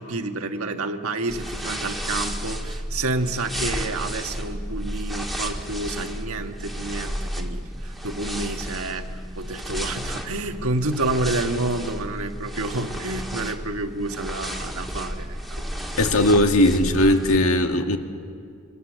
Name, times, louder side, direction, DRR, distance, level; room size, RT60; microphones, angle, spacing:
voice 1, 0.0-9.1 9.4-15.7, right 2 dB, 80° right, 6 dB, 1.5 m, -29 dB
sound 1, 1.3-17.4, equal, ahead, 1.7 m, -32 dB
voice 2, 16.0-18.0, left 1 dB, 75° left, 5 dB, 1.8 m, -18 dB
25.5 x 24.0 x 7.4 m, 2.2 s
head